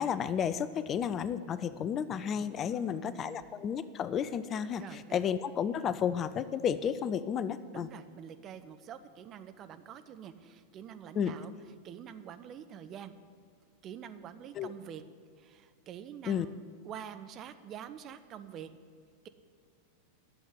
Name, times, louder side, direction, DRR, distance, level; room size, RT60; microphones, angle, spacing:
voice 1, 0.0-7.9 11.2-11.3 14.6-14.7 16.3-16.5, left 8 dB, 30° left, 15 dB, 0.4 m, -32 dB
voice 2, 2.7-3.5 4.8-5.2 7.7-13.1 13.8-15.0 15.4-18.7, right 9 dB, 30° right, 10 dB, 0.6 m, -46 dB
11.5 x 7.3 x 8.1 m, 2.1 s
figure-of-eight pair, 90°, 0 cm